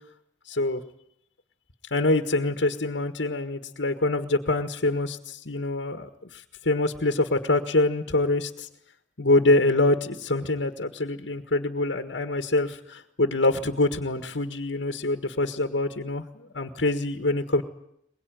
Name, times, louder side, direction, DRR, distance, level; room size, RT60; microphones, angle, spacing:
voice 1, 0.5-0.8 1.9-8.7 9.2-17.6, left 2 dB, 80° left, 6 dB, 1.7 m, -25 dB
22.5 x 21.5 x 9.3 m, 0.73 s
head